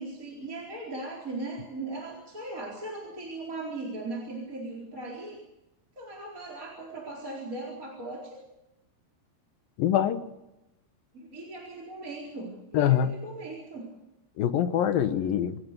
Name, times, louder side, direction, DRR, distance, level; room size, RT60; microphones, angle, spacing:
voice 1, 0.0-5.4 6.0-8.4 11.1-13.9, right 2 dB, 20° right, 0 dB, 4.3 m, -38 dB
voice 2, 9.8-10.2 12.7-13.1 14.4-15.6, left 10 dB, 70° left, 10 dB, 2.6 m, -24 dB
27.0 x 17.0 x 6.8 m, 0.93 s
omnidirectional pair, 4.8 m